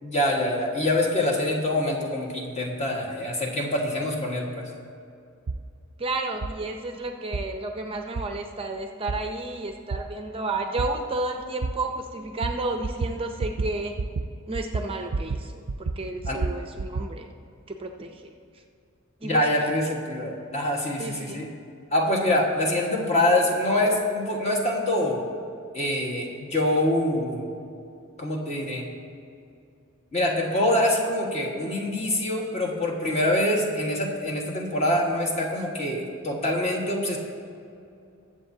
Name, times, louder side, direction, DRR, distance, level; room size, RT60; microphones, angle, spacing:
voice 1, 0.0-4.6 16.2-16.4 19.2-21.5 21.9-25.2 25.7-27.4 28.2-28.8 30.1-37.2, left 1 dB, 30° left, -1 dB, 1.5 m, -25 dB
sound 1, 5.5-5.6 6.4-6.5 7.3-7.4 8.1-8.2 9.1-9.2 9.9-10.0 10.8-10.9 11.6-11.7 12.4-12.5 12.8-13.1 13.4-13.7 14.0-14.3 14.5-15.4 15.7-17.1, right 3 dB, 75° right, 0.5 m, -29 dB
voice 2, 6.0-13.9 14.5-17.3 17.7-18.3 19.2-19.7 21.0-21.4, right 2 dB, 25° right, 4 dB, 0.6 m, -32 dB
21.5 x 7.5 x 2.8 m, 2.5 s
head